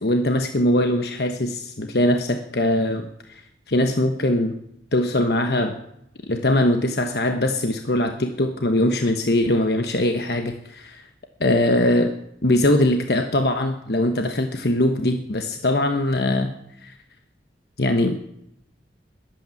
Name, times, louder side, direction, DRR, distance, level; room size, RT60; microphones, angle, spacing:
voice 1, 0.0-3.4 3.7-4.6 4.9-5.8 6.3-11.0 11.4-12.1 12.4-16.5 16.8-17.0 17.8-18.2, left 1 dB, 65° left, 5 dB, 1.2 m, -21 dB
21.5 x 9.0 x 7.1 m, 0.76 s
head